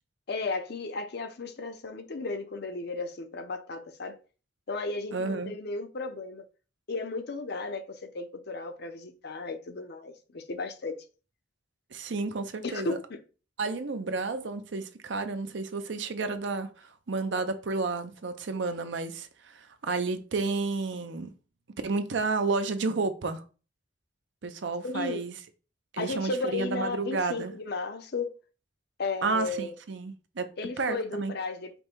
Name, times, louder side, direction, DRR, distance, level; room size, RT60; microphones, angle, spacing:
voice 1, 0.3-4.2 4.7-6.4 6.9-11.0 12.6-13.2 24.8-25.2 26.0-28.4 29.0-29.7 30.6-31.8, left 3 dB, 55° left, 0.6 m, -34 dB
voice 2, 5.1-5.5 11.9-13.0 13.6-21.3 21.8-23.4 24.4-25.3 25.9-27.5 29.2-30.5 30.8-31.3, right 3 dB, 65° right, 0.6 m, -31 dB
5.2 x 2.1 x 4.4 m
head